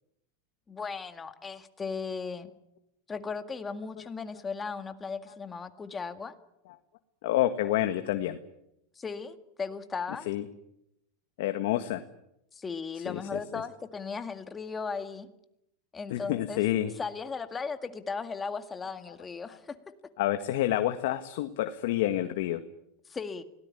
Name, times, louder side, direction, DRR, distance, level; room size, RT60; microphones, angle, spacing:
voice 1, 0.7-2.5 3.1-6.3 9.0-10.3 12.5-15.3 15.9-16.6 17.0-19.8 23.1-23.4, left 5 dB, 15° left, 9 dB, 1.9 m, -36 dB
voice 2, 7.2-8.4 10.3-10.4 11.4-12.0 13.1-13.2 16.1-16.9 20.2-22.6, left 13 dB, 65° left, 8 dB, 1.7 m, -28 dB
24.5 x 18.0 x 10.0 m, 0.83 s
supercardioid pair, 145°, 0 cm